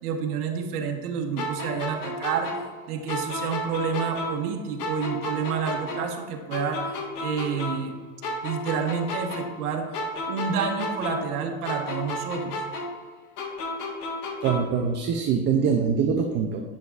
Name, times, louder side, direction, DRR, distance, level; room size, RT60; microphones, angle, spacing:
voice 1, 0.0-8.0 8.4-10.0 10.3-12.6, right 6 dB, 80° right, 3 dB, 1.1 m, -29 dB
sound 1, 1.4-4.5 4.8-8.0 8.2-11.4 11.7-14.8, left 1 dB, 75° left, 1.5 m, -32 dB
voice 2, 14.4-16.6, right 6 dB, 25° right, 3 dB, 0.4 m, -24 dB
8.4 x 6.2 x 2.4 m, 1.3 s
supercardioid pair, 125°, 45 cm